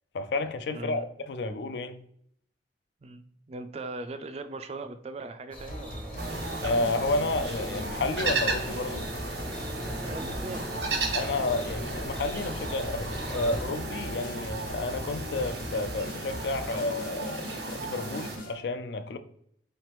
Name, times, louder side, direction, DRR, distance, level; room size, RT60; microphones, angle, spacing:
voice 1, 0.1-1.0 1.3-2.0 6.6-9.1 11.1-19.2, left 3 dB, 70° left, 0.4 m, -31 dB
voice 2, 0.7-1.0 3.0-6.3 10.0-10.7 11.0-11.1 14.5-14.6, right 2 dB, 35° right, 0.3 m, -39 dB
sound 1, 5.5-13.6, equal, 5° left, 0.6 m, -42 dB
sound 2, 5.7-18.6, left 1 dB, 50° left, 0.9 m, -41 dB
sound 3, 6.2-18.4, right 2 dB, 85° right, 1.2 m, -35 dB
4.0 x 3.2 x 3.0 m
head